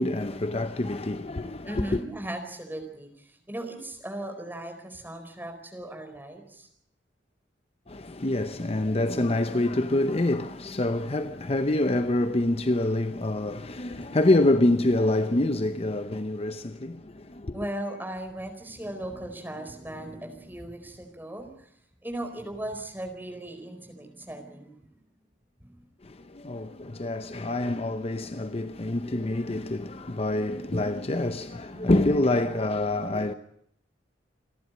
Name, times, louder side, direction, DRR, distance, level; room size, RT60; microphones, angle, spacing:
voice 1, 0.0-2.0 7.9-17.6 26.0-33.3, left 1 dB, 35° left, 0.8 m, -26 dB
voice 2, 1.7-6.7 17.5-21.5 22.0-24.8 25.6-25.8 31.7-31.9, right 1 dB, 10° right, 4.3 m, -37 dB
28.5 x 11.5 x 9.4 m
head